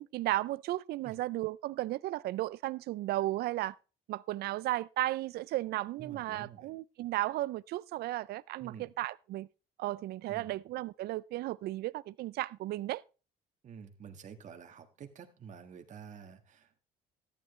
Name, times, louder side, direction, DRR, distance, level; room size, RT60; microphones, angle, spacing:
voice 1, 0.0-3.8 4.1-9.5 9.8-13.0, right 16 dB, 70° right, 0.4 m, -34 dB
voice 2, 6.0-6.7 8.6-8.9 10.3-10.5 13.6-16.8, right 7 dB, 45° right, 1.7 m, -49 dB
13.5 x 10.0 x 3.2 m
cardioid pair, 110°, 17 cm